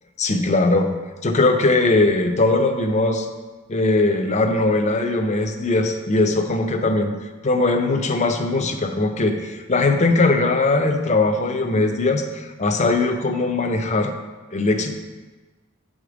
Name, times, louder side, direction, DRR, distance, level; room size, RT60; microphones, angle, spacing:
voice 1, 0.2-0.9 1.2-3.3 3.7-7.1 7.4-14.1 14.5-14.9, left 2 dB, 35° left, 5 dB, 0.7 m, -20 dB
7.5 x 5.1 x 5.0 m, 1.3 s
head